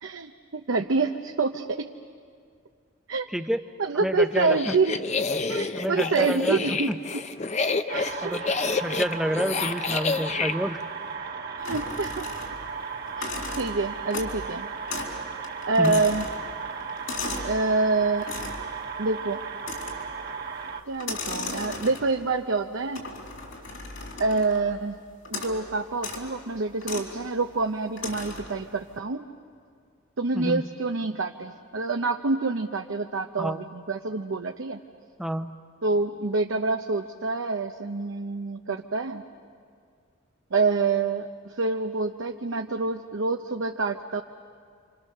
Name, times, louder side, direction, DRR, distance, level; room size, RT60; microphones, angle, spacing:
voice 1, 0.0-1.9 3.1-3.3 3.8-5.0 5.5-7.2 7.9-8.4 11.6-12.3 13.2-14.7 15.7-16.3 17.4-18.3 19.0-19.4 20.8-23.1 24.2-24.9 25.3-29.3 30.2-34.8 35.8-39.2 40.5-44.2, right 3 dB, 75° right, 4 dB, 0.8 m, -27 dB
voice 2, 4.0-4.7 5.7-7.0 8.2-10.8 15.8-16.0 30.3-30.6 33.4-33.6 35.2-35.5, equal, ahead, 8 dB, 0.7 m, -29 dB
sound 1, 4.4-10.5, left 4 dB, 35° left, 0.7 m, -28 dB
sound 2, 7.9-20.8, right 5 dB, 50° right, 1.2 m, -36 dB
sound 3, 11.6-12.7 13.1-14.5 14.9-15.2 15.4-17.6 18.2-18.7 19.6-20.2 20.9-22.2 22.9-24.7 25.2-25.6 25.9-26.3 26.8-27.1 28.0-28.5, left 3 dB, 75° left, 3.9 m, -36 dB
28.5 x 26.0 x 6.6 m, 2.2 s
head